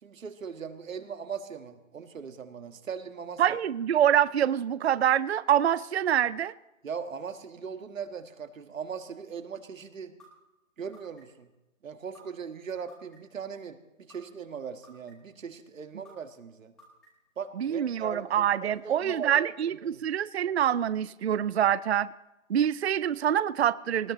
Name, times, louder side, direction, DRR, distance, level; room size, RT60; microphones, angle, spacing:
voice 1, 0.0-3.6 6.8-10.2 10.8-11.5 11.8-16.7 17.4-19.5 19.8-20.0, right 6 dB, 70° right, 1.7 m, -39 dB
voice 2, 3.4-6.5 17.6-22.1 22.5-24.1, right 10 dB, 55° right, 0.4 m, -25 dB
sound 1, 10.2-10.3 10.9-11.4 12.1-12.2 12.9-13.4 14.1-14.2 14.8-15.3 16.0-16.1 16.8-17.3, equal, ahead, 1.1 m, -54 dB
19.5 x 19.5 x 3.1 m
hypercardioid pair, 175°, 40 cm